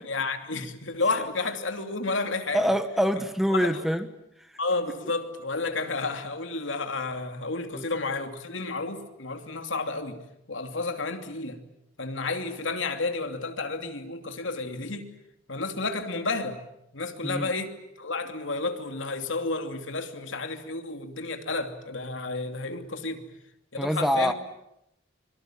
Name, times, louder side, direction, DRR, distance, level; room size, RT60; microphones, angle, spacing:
voice 1, 0.1-2.6 3.5-3.9 4.6-10.2 10.5-11.6 12.0-15.1 15.5-16.6 16.9-23.2 23.7-24.3, left 3 dB, 80° left, 2.8 m, -31 dB
voice 2, 2.5-4.1 7.7-7.9 17.2-17.5 23.8-24.3, equal, ahead, 1.3 m, -25 dB
25.0 x 23.0 x 8.8 m
head